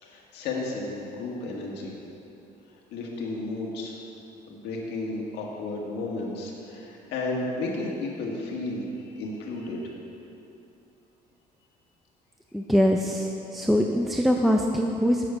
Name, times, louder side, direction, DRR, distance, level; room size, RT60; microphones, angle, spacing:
voice 1, 0.0-1.9 2.7-4.0 4.5-9.9, left 2 dB, 85° left, -2 dB, 1.6 m, -33 dB
voice 2, 12.5-15.3, equal, ahead, 1 dB, 0.4 m, -23 dB
8.2 x 8.2 x 4.9 m, 2.9 s
cardioid pair, 110°, 17 cm